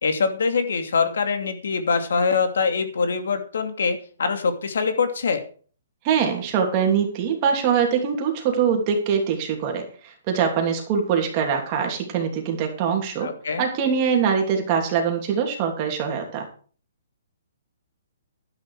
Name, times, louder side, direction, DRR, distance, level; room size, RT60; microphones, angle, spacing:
voice 1, 0.0-5.4 13.2-13.7, left 5 dB, 75° left, 7 dB, 2.7 m, -24 dB
voice 2, 6.0-13.3 13.6-16.5, right 7 dB, 25° right, 2 dB, 2.9 m, -23 dB
12.0 x 9.9 x 4.9 m, 0.42 s
hypercardioid pair, 170°, 0 cm